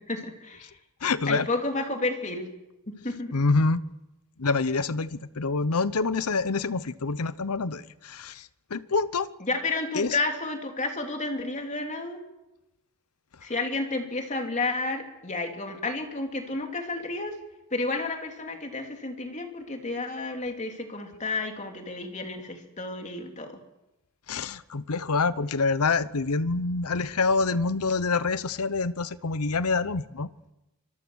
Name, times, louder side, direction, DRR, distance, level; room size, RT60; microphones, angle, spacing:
voice 1, 0.1-0.7 1.3-2.5 2.9-3.3 9.4-12.2 13.4-17.3 17.7-23.6, left 2 dB, 35° left, 3.1 m, -31 dB
voice 2, 1.0-1.5 3.3-3.8 4.4-9.3 9.9-10.2 24.3-30.3, left 4 dB, 85° left, 0.9 m, -26 dB
25.0 x 22.0 x 6.4 m
head